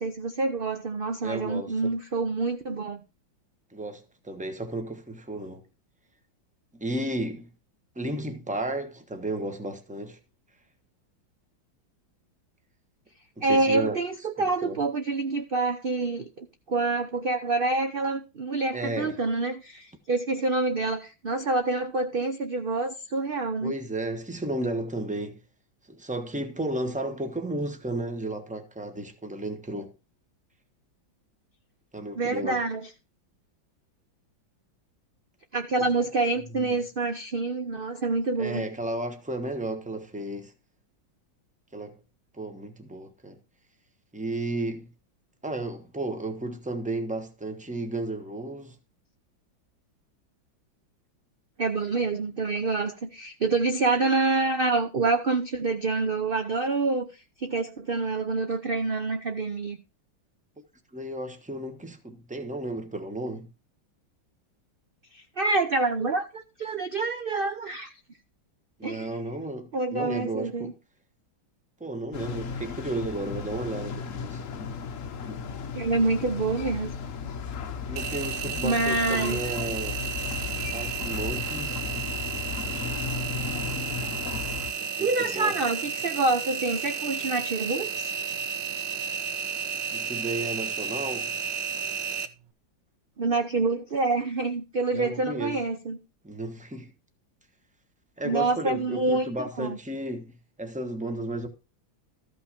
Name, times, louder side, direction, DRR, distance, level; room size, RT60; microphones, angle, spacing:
voice 1, 0.0-3.0 13.4-23.7 32.2-32.9 35.5-38.6 51.6-57.1 57.4-59.8 65.1-67.9 68.8-69.1 69.7-70.7 75.7-76.9 78.6-79.4 85.0-88.1 93.2-96.0 98.2-99.8, right 3 dB, 50° right, 0.6 m, -27 dB
voice 2, 1.2-1.9 3.7-5.6 6.7-7.5 7.9-10.2 13.4-14.0 14.6-14.8 18.7-19.2 23.6-25.4 25.9-29.9 31.9-32.6 36.5-36.7 38.4-40.5 41.7-42.0 42.3-43.4 44.1-44.9 45.4-48.8 60.9-63.5 68.8-70.8 71.8-74.4 77.9-80.0 80.7-81.8 84.8-85.6 89.9-91.3 94.9-95.6 96.2-96.9 98.2-101.5, right 1 dB, 5° right, 1.0 m, -33 dB
sound 1, 72.1-84.7, left 6 dB, 50° left, 1.0 m, -35 dB
Engine, 78.0-92.3, right 7 dB, 70° right, 1.5 m, -32 dB
14.0 x 5.8 x 5.1 m
omnidirectional pair, 2.1 m